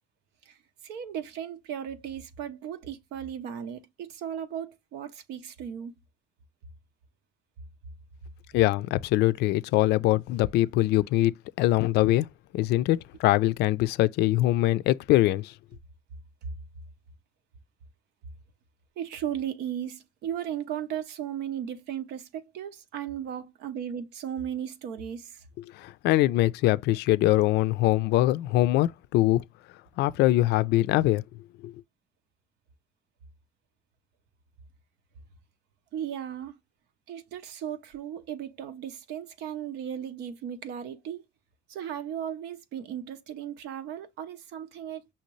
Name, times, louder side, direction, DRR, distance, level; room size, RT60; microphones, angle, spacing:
voice 1, 0.8-5.9 19.0-25.4 35.9-36.6 37.1-41.3 41.7-45.1, right 9 dB, 85° right, 0.7 m, -36 dB
voice 2, 8.5-11.3 11.6-12.3 12.5-15.5 25.7-29.4 30.0-31.2 31.6-31.7, left 16 dB, 80° left, 0.4 m, -23 dB
5.7 x 2.7 x 3.0 m
cardioid pair, 110°, 17 cm